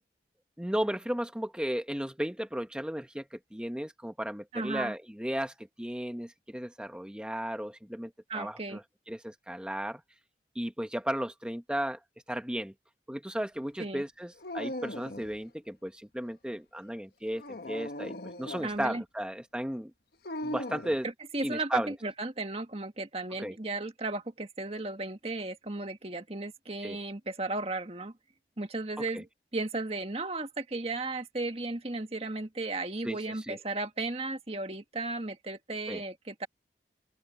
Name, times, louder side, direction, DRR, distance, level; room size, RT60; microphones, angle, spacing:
voice 1, 0.6-8.8 9.1-10.0 10.5-12.0 12.3-12.7 13.1-19.9 20.4-21.1 21.4-21.9 23.4-23.5 26.8-27.0 29.1-29.2 33.0-33.6 35.9-36.0, equal, 5° right, 0.9 m, -35 dB
voice 2, 4.5-4.9 8.3-8.8 13.8-14.0 18.6-19.0 21.3-28.1 28.6-29.3 29.5-36.5, right 2 dB, 35° right, 1.8 m, -35 dB
Dog, 14.4-15.4 17.3-18.8 20.2-21.0, left 1 dB, 60° left, 1.4 m, -39 dB
open air
head